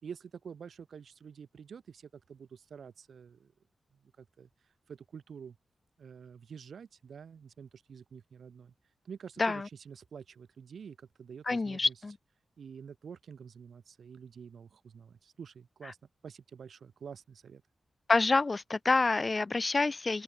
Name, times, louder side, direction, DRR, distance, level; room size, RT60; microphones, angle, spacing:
voice 1, 0.0-3.5 4.2-4.5 4.9-5.6 6.0-8.7 9.0-11.9 12.6-16.0 16.2-17.6, right 7 dB, 75° right, 4.0 m, -48 dB
voice 2, 11.5-12.2 18.1-20.2, left 3 dB, 30° left, 1.1 m, -27 dB
open air
wide cardioid pair, 150°, 0 cm